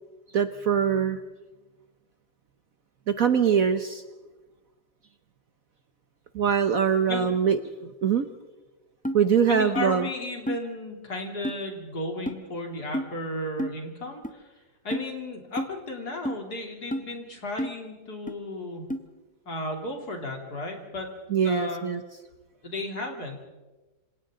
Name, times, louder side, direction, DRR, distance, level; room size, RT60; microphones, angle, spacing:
voice 1, 0.3-1.2 3.1-4.0 6.3-8.3 9.1-10.1 21.3-22.0, right 7 dB, 55° right, 9 dB, 1.1 m, -23 dB
sound 1, 9.0-9.2 9.8-9.9 10.5-10.6 11.4-11.6 12.3-12.4 12.9-13.1 13.6-13.7 14.2-14.3 14.9-15.1 15.6-15.7 16.2-16.4 16.9-17.1 17.6-17.7 18.3-18.4 18.9-19.0, equal, 10° left, 0.5 m, -30 dB
voice 2, 9.5-14.5 14.8-18.9 19.5-21.1 21.4-21.8 22.6-23.4, left 1 dB, 55° left, 1 dB, 3.8 m, -34 dB
27.5 x 26.5 x 3.8 m, 1.2 s
omnidirectional pair, 2.0 m